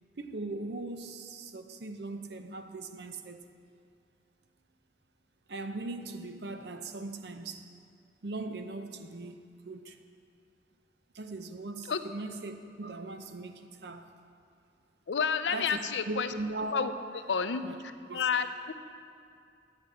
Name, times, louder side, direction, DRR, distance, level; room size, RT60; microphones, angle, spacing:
voice 1, 0.2-3.4 5.5-7.7 8.2-10.0 11.1-14.1 15.5-15.8 16.1-17.2 17.6-17.8 18.1-18.3, right 2 dB, 70° right, 0.6 m, -39 dB
voice 2, 15.1-16.3 16.7-16.9 17.3-17.6 18.1-18.7, left 6 dB, 85° left, 0.5 m, -29 dB
10.5 x 5.2 x 8.3 m
head